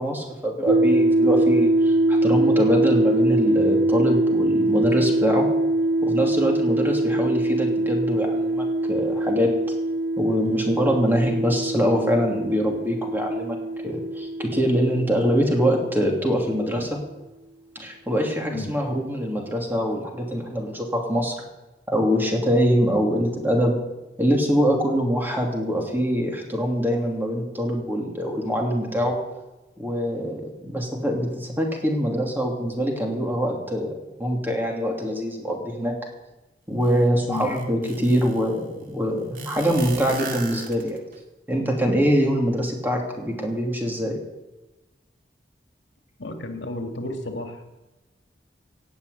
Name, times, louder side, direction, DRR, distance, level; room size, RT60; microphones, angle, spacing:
voice 1, 0.0-5.5 6.0-9.5 10.2-13.6 13.8-17.0 17.7-21.3 21.9-23.8 24.2-29.1 29.8-33.9 34.2-35.9 36.7-41.0 41.5-44.2, equal, 10° right, 0 dB, 2.9 m, -24 dB
sound 1, 0.7-16.2, right 1 dB, 80° right, 0.4 m, -23 dB
sound 2, 36.8-36.9 37.3-38.5 39.4-41.2, right 4 dB, 50° right, 2.1 m, -36 dB
voice 2, 46.2-47.6, left 2 dB, 80° left, 4 dB, 2.0 m, -32 dB
18.5 x 6.9 x 8.4 m, 1.1 s
head